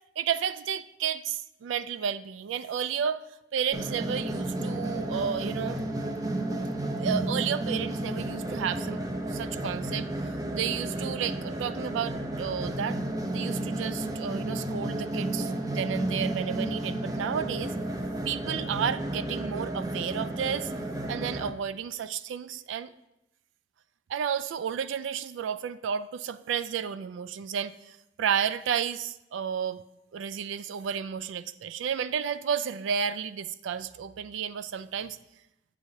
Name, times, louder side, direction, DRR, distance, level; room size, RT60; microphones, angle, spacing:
voice 1, 0.2-3.2 3.5-5.8 7.0-9.0 9.3-13.0 13.3-17.7 18.3-20.7 21.1-22.9 24.1-29.8 30.1-35.2, right 7 dB, 85° right, 0.3 m, -32 dB
sound 1, 3.7-21.5, right 1 dB, 20° right, 0.4 m, -32 dB
7.9 x 7.0 x 2.7 m
head